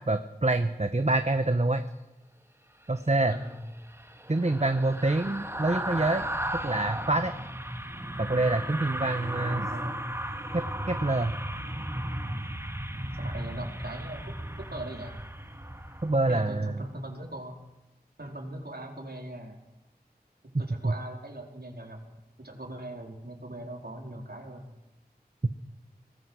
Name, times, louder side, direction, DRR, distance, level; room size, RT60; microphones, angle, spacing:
voice 1, 0.1-1.8 2.9-3.3 4.3-6.2 6.5-7.3 8.2-9.7 10.5-11.3 16.0-16.7 20.8-20.9, right 2 dB, 45° right, 8 dB, 1.1 m, -26 dB
sound 1, 3.3-16.6 16.9-17.1, right 1 dB, 15° right, 1.9 m, -35 dB
voice 2, 3.3-3.6 9.3-10.1 13.1-15.2 16.3-17.6 18.2-19.6 20.4-22.0 22.4-24.7, right 1 dB, 75° right, 0 dB, 4.3 m, -40 dB
24.0 x 19.5 x 6.4 m, 0.99 s
wide cardioid pair, 40°, 16 cm